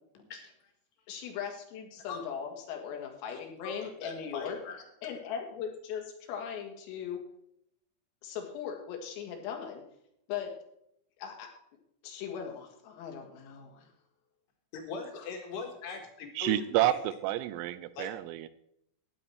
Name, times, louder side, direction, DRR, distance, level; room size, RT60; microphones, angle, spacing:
voice 1, 0.2-0.7 2.0-2.2 3.3-4.8 14.7-17.0 18.0-18.1, left 4 dB, 65° left, 3 dB, 3.5 m, -41 dB
voice 2, 1.1-4.6 5.0-7.2 8.2-9.8 10.3-10.5 11.2-11.5 12.0-13.9, left 8 dB, 85° left, 2 dB, 4.6 m, -39 dB
voice 3, 16.4-16.9 17.2-18.5, right 14 dB, 85° right, 15 dB, 3.4 m, -29 dB
13.0 x 9.9 x 4.6 m, 0.75 s
omnidirectional pair, 5.9 m